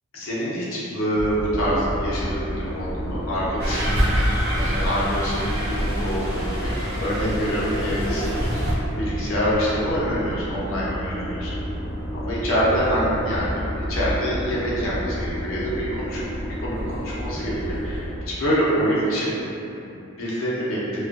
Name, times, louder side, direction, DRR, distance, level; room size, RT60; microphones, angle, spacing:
voice 1, 0.1-4.2 4.5-8.4 8.9-11.6 12.1-19.4 19.8-20.8, equal, 65° left, -7 dB, 0.7 m, -26 dB
sound 1, 1.2-18.1, equal, 20° right, 1.2 m, -31 dB
sound 2, 3.6-8.7, equal, 50° right, 0.6 m, -26 dB
2.5 x 2.4 x 2.4 m, 2.8 s
head